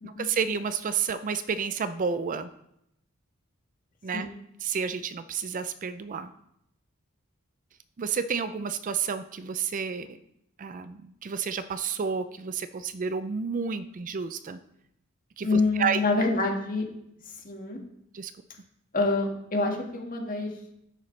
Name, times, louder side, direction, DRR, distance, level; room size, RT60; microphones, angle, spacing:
voice 1, 0.0-2.5 4.0-4.3 4.6-6.3 8.0-10.2 10.6-14.6 15.4-16.0 18.1-18.3, right 6 dB, 40° right, 12 dB, 0.4 m, -30 dB
voice 2, 15.4-16.8 17.4-17.8 18.9-20.5, left 3 dB, 40° left, 1 dB, 1.7 m, -26 dB
10.0 x 8.9 x 3.2 m, 0.80 s
head